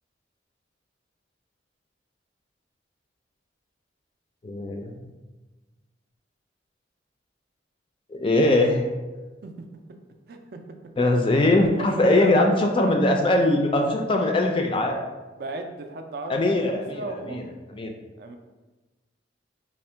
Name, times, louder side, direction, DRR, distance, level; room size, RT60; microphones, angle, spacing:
voice 1, 4.4-5.0 8.1-8.9 11.0-15.0 16.3-17.4 17.7-17.9, left 2 dB, 25° left, 3 dB, 0.3 m, -21 dB
voice 2, 10.3-10.6 11.4-12.5 12.8-12.9 15.4-17.4 18.2-18.4, right 2 dB, 50° right, 5 dB, 0.3 m, -35 dB
3.5 x 2.1 x 4.3 m, 1.2 s
head